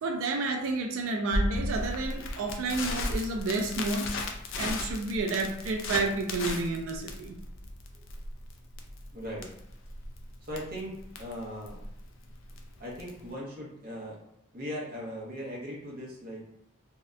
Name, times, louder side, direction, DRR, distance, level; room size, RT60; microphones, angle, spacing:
voice 1, 0.0-4.2 4.6-7.4, right 3 dB, 70° right, 3 dB, 0.3 m, -30 dB
Crackle, 1.3-13.3, left 2 dB, 60° left, 0.4 m, -35 dB
voice 2, 9.1-9.5 10.4-11.8 12.8-14.2 14.5-16.4, equal, 40° right, -4 dB, 0.7 m, -39 dB
2.6 x 2.1 x 2.3 m, 0.77 s
head